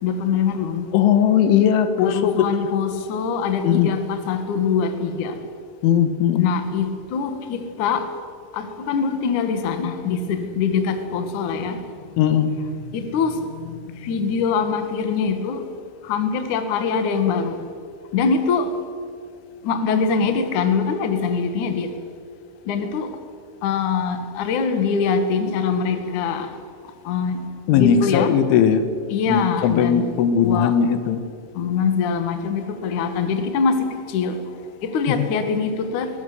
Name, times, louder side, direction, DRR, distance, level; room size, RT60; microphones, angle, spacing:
voice 1, 0.0-0.9 2.0-5.4 6.4-8.0 8.5-11.8 12.6-13.7 13.9-15.7 16.0-17.6 18.1-18.7 19.6-21.9 22.7-23.1 23.6-26.5 27.0-27.4 27.7-28.3 29.1-30.1 30.4-30.7 31.5-34.4 34.8-36.1, left 5 dB, 55° left, 7 dB, 2.4 m, -23 dB
voice 2, 0.9-2.3 3.6-3.9 5.8-6.5 12.2-12.5 27.7-28.8 29.3-31.2 35.1-35.3, left 8 dB, 80° left, 10 dB, 3.7 m, -18 dB
22.5 x 18.5 x 8.0 m, 2.2 s
omnidirectional pair, 5.6 m